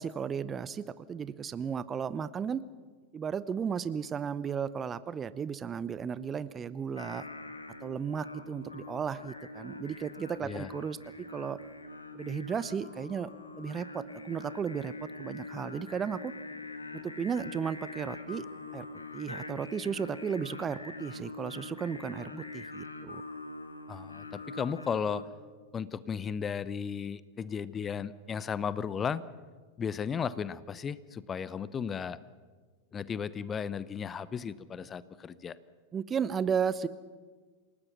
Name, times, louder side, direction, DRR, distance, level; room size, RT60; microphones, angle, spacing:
voice 1, 0.0-2.6 3.1-7.3 7.8-11.0 11.3-11.6 12.1-13.3 13.6-16.3 16.9-18.5 18.7-18.9 19.1-23.2 35.9-36.9, right 7 dB, 20° right, 17 dB, 0.7 m, -34 dB
Singing, 7.0-25.2, left 2 dB, 80° left, 1.9 m, -44 dB
voice 2, 23.9-25.2 25.7-29.2 29.8-32.2 32.9-35.6, left 7 dB, 20° left, 17 dB, 0.8 m, -35 dB
28.0 x 18.5 x 6.1 m, 1.4 s
figure-of-eight pair, 90°, 0 cm